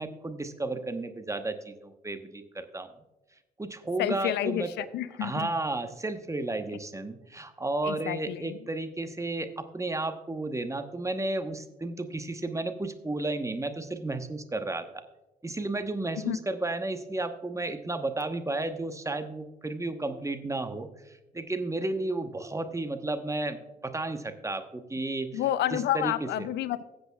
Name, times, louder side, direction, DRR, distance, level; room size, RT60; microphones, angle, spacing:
voice 1, 0.0-2.9 3.6-4.9 5.2-14.9 15.4-23.6 23.8-25.4 25.7-26.5, right 2 dB, 15° right, 8 dB, 1.1 m, -33 dB
voice 2, 4.0-5.5 7.8-8.6 16.2-16.4 25.3-26.8, left 12 dB, 65° left, 16 dB, 0.5 m, -30 dB
16.5 x 8.0 x 2.3 m, 1.0 s
hypercardioid pair, 50°, 20 cm